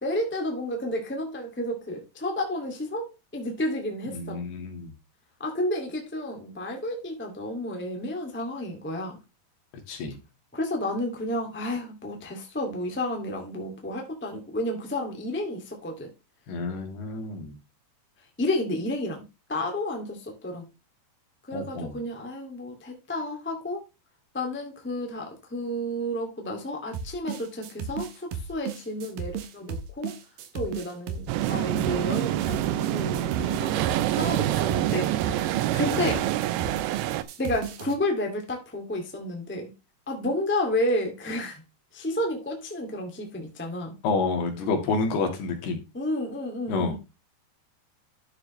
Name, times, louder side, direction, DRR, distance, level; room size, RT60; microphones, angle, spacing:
voice 1, 0.0-4.5 5.4-9.2 10.5-16.1 18.4-20.6 21.5-23.8 24.3-30.2 30.5-36.2 37.4-39.7 40.1-41.6 41.9-43.9 45.9-47.0, left 1 dB, 10° left, 0.5 m, -31 dB
voice 2, 4.1-4.9 9.9-10.2 16.5-17.6 21.5-22.0 35.9-36.2 44.0-45.8 46.7-47.0, left 4 dB, 70° left, 3.8 m, -29 dB
sound 1, 26.9-38.0, right 7 dB, 70° right, 2.4 m, -35 dB
sound 2, 31.3-37.2, right 14 dB, 90° right, 2.9 m, -26 dB
12.0 x 6.5 x 3.2 m
omnidirectional pair, 4.9 m